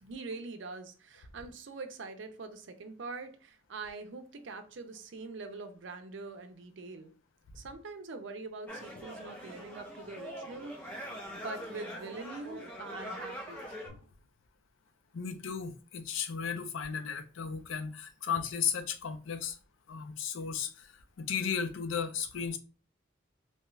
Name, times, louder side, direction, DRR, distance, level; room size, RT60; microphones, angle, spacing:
voice 1, 0.0-7.1 7.5-13.8, right 3 dB, 70° right, 0.5 m, -44 dB
sound 1, 8.7-13.9, equal, 10° left, 0.6 m, -43 dB
voice 2, 15.1-19.6 19.9-22.6, left 7 dB, 85° left, 0.5 m, -35 dB
2.8 x 2.3 x 3.1 m
head